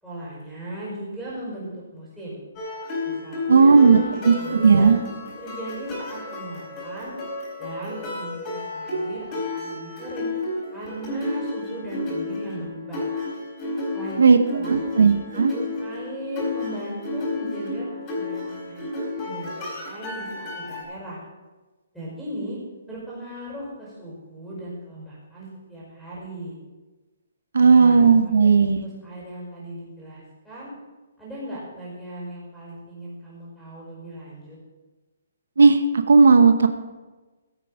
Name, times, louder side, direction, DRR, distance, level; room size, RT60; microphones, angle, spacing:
voice 1, 0.0-2.4 3.0-5.0 5.4-7.1 7.6-10.3 10.7-13.0 13.9-14.9 15.5-21.2 21.9-22.6 22.9-26.6 27.6-28.5 28.8-30.7 31.2-34.6, right 1 dB, ahead, -8 dB, 5.1 m, -37 dB
sound 1, 2.6-20.8, left 2 dB, 20° left, 4.2 m, -32 dB
voice 2, 3.5-4.0 4.2-5.0 14.2-14.4 14.7-15.5 27.5-28.8 35.6-35.8 36.1-36.7, right 5 dB, 90° right, 9 dB, 1.0 m, -15 dB
15.5 x 8.5 x 5.0 m, 1.2 s
hypercardioid pair, 170°, 0 cm